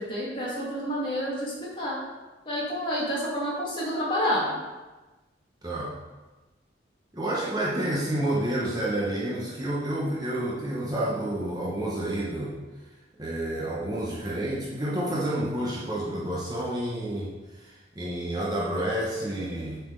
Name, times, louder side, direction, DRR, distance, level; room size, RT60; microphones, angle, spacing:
voice 1, 0.0-2.0 2.5-4.5, equal, 30° left, -7 dB, 2.2 m, -29 dB
voice 2, 5.6-5.9 7.1-12.5 13.2-17.3 17.9-19.8, right 1 dB, 20° right, -6 dB, 1.1 m, -29 dB
7.3 x 4.2 x 5.3 m, 1.2 s
head